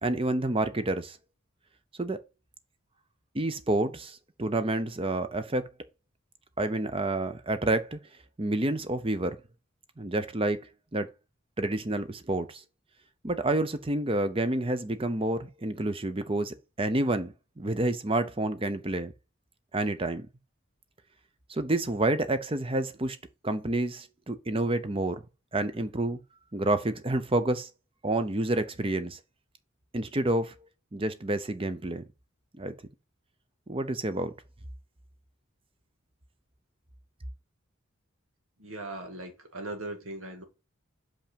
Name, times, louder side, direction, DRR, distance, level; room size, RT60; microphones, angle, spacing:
voice 1, 0.0-1.2 2.0-2.2 3.3-5.6 6.6-8.0 8.4-9.4 10.0-10.6 10.9-11.1 11.6-12.6 13.2-19.1 19.7-20.3 21.5-23.2 23.4-25.2 25.5-26.2 26.5-27.7 28.0-29.2 29.9-30.5 30.9-32.0 32.6-32.7 33.7-34.3, right 2 dB, 25° right, 0.7 m, -29 dB
voice 2, 38.6-40.4, right 2 dB, 90° right, 2.1 m, -39 dB
5.7 x 5.4 x 5.2 m
head